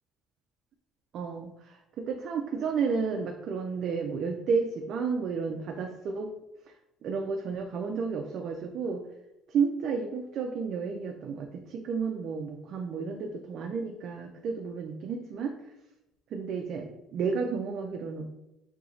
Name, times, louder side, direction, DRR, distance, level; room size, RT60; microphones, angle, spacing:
voice 1, 1.1-6.3 7.0-9.1 9.5-15.7 16.3-18.2, right 5 dB, 55° right, 3 dB, 0.5 m, -32 dB
4.6 x 2.8 x 4.0 m, 0.89 s
cardioid pair, 130°, 0 cm